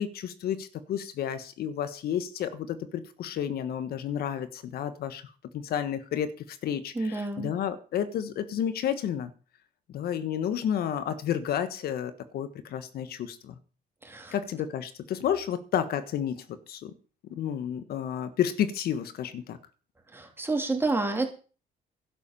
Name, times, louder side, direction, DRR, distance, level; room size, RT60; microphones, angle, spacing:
voice 1, 0.0-5.2 5.5-9.3 9.9-13.5 14.3-16.9 17.3-19.6, left 9 dB, 65° left, 12 dB, 1.4 m, -31 dB
voice 2, 6.9-7.5 14.0-14.3 20.1-21.3, right 3 dB, 15° right, 3 dB, 3.3 m, -29 dB
11.5 x 8.3 x 6.9 m, 0.37 s
cardioid pair, 110°, 17 cm